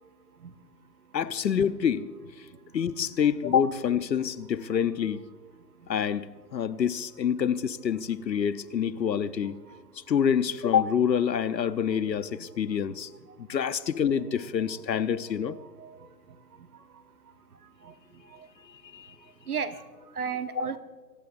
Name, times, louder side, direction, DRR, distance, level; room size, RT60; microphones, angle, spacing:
voice 1, 1.1-2.1 2.7-5.2 5.9-9.6 10.1-13.1 13.5-15.6 18.9-19.1 20.5-20.7, left 8 dB, 80° left, 0.9 m, -27 dB
voice 2, 15.5-16.1 17.8-17.9 18.2-18.5 19.5-19.9 20.1-20.8, right 6 dB, 60° right, 1.3 m, -35 dB
23.0 x 17.5 x 2.6 m
hypercardioid pair, 165°, 50 cm